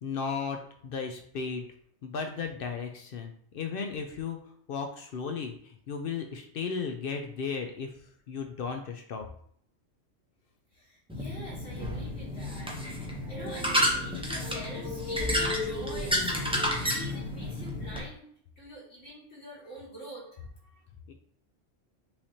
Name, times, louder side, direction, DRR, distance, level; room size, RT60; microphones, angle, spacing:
voice 1, 0.0-1.7 2.0-4.4 4.7-7.9 8.3-9.3 21.1-21.2, left 5 dB, 60° left, 5 dB, 0.6 m, -35 dB
voice 2, 10.7-13.0 13.3-18.3 18.6-20.8, equal, 75° left, -7 dB, 2.2 m, -45 dB
sound 1, 11.1-18.0, left 1 dB, 5° right, 0.6 m, -30 dB
5.7 x 3.3 x 2.7 m, 0.62 s
omnidirectional pair, 1.3 m